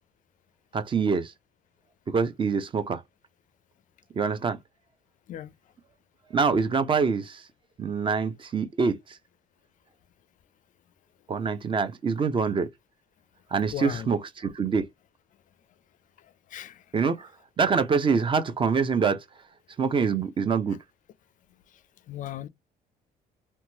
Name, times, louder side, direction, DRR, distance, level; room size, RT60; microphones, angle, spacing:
voice 1, 0.7-1.3 2.1-3.0 4.2-4.6 6.3-7.4 7.8-9.2 11.3-12.7 13.5-14.8 16.9-17.3 17.6-19.2 19.8-20.8, right 5 dB, 30° right, 0.5 m, -25 dB
voice 2, 13.7-14.1 16.5-16.8 22.1-22.5, left 11 dB, 50° left, 0.4 m, -36 dB
2.9 x 2.2 x 2.8 m
cardioid pair, 110°, 17 cm